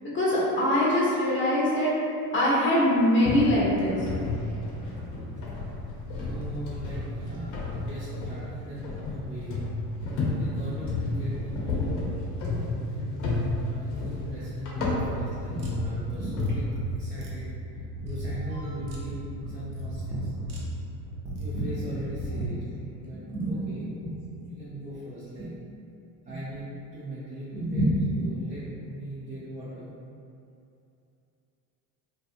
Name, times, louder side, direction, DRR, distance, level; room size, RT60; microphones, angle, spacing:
voice 1, 0.1-1.9 2.3-4.0 7.3-7.4 23.0-23.5 24.0-24.2 25.4-25.5 26.3-26.4 27.5-27.9, left 1 dB, 25° left, -6 dB, 0.8 m, -24 dB
sound 1, 3.2-16.5, left 2 dB, 70° left, 0.8 m, -32 dB
voice 2, 6.2-9.7 10.4-11.8 12.9-13.3 13.6-17.5 18.0-20.3 21.4-25.5 26.3-29.9, equal, 15° right, -10 dB, 0.5 m, -40 dB
sound 2, 15.2-22.5, right 1 dB, 75° right, 0.8 m, -34 dB
2.6 x 2.2 x 2.5 m, 2.6 s
hypercardioid pair, 75°, 50 cm